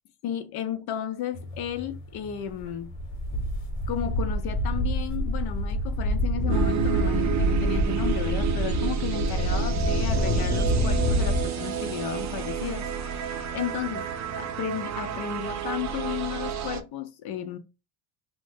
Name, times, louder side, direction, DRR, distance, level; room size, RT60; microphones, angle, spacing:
voice 1, 0.2-2.9 3.9-14.1 14.3-17.6, left 9 dB, 60° left, 0.6 m, -33 dB
sound 1, 1.3-11.9, left 2 dB, 80° left, 1.0 m, -43 dB
sound 2, 2.5-2.7 3.0-11.4, equal, 20° left, 0.8 m, -26 dB
sound 3, 6.5-16.8, right 8 dB, 40° right, 0.5 m, -30 dB
3.0 x 2.1 x 3.5 m
cardioid pair, 135°, 43 cm